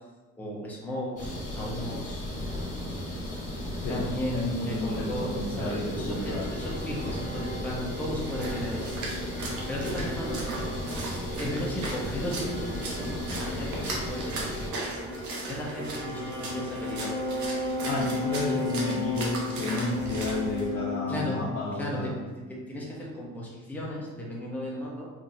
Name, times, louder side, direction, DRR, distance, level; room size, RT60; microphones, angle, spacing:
voice 1, 0.4-2.2 3.9-9.0 9.5-10.5 10.9-14.6 15.5-17.3 21.1-22.2 22.5-25.1, equal, 5° left, -5 dB, 0.9 m, -35 dB
sound 1, 1.2-14.7, left 1 dB, 25° left, 1.4 m, -35 dB
voice 2, 3.8-6.5 7.1-7.2 17.8-22.1, left 1 dB, 50° left, -5 dB, 0.7 m, -32 dB
sound 2, 5.7-21.9, left 3 dB, 40° right, 0.9 m, -35 dB
Splash splatter, 7.9-20.7, right 2 dB, 70° right, 0.9 m, -39 dB
3.6 x 2.9 x 2.7 m, 1.2 s
cardioid pair, 90°, 30 cm